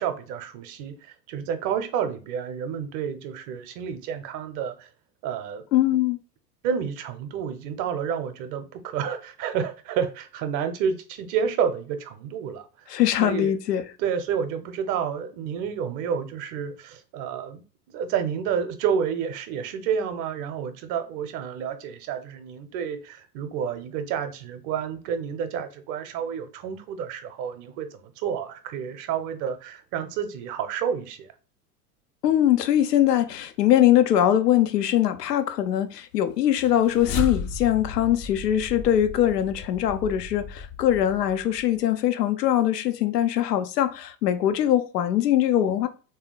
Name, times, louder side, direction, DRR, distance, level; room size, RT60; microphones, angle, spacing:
voice 1, 0.0-4.9 5.2-5.6 6.6-12.9 13.2-13.6 14.0-31.3, right 7 dB, 40° right, 0.7 m, -30 dB
voice 2, 5.7-6.2 12.9-13.8 32.2-45.9, left 11 dB, 80° left, 0.6 m, -22 dB
sound 1, 36.5-41.8, left 3 dB, 30° left, 0.5 m, -35 dB
3.5 x 2.8 x 3.9 m
figure-of-eight pair, 85°, 48 cm